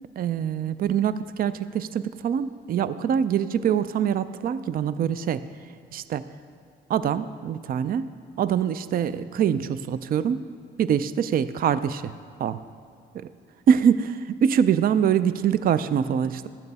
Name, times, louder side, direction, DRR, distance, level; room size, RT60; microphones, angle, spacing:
voice 1, 0.2-5.4 5.9-6.3 6.9-8.1 8.4-10.5 10.8-12.1 12.4-12.6 13.1-13.3 13.7-16.5, right 8 dB, 50° right, 15 dB, 0.4 m, -24 dB
12.0 x 8.9 x 4.1 m, 2.4 s
cardioid pair, 90°, 20 cm